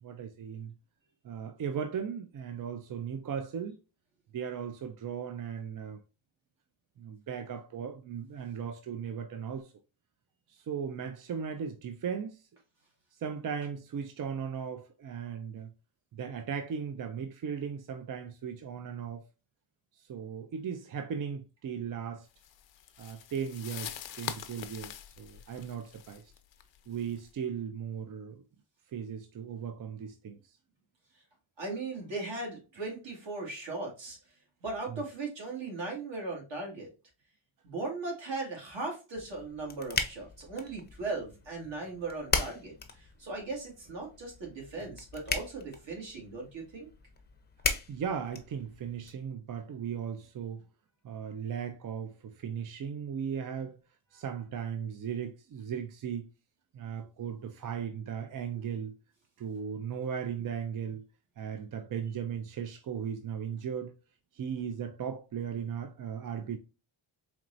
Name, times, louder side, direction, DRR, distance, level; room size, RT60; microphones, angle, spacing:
voice 1, 0.0-0.7 1.2-3.8 4.3-6.0 7.0-9.7 10.5-12.4 13.1-15.7 16.1-19.2 19.9-22.3 23.0-26.3 26.9-28.4 28.9-30.6 32.8-32.9 34.9-35.0 47.9-50.7 51.0-53.8 54.1-56.3 56.7-58.9 59.4-61.0 61.4-63.9 64.3-66.6, right 7 dB, 45° right, 0.4 m, -37 dB
sound 1, 22.4-27.3, left 10 dB, 65° left, 0.6 m, -44 dB
voice 2, 31.6-34.2 34.6-36.9 37.6-46.9, right 3 dB, 60° right, 2.0 m, -38 dB
sound 2, 39.2-49.1, left 4 dB, 20° left, 0.6 m, -38 dB
4.4 x 3.0 x 2.5 m
cardioid pair, 105°, 49 cm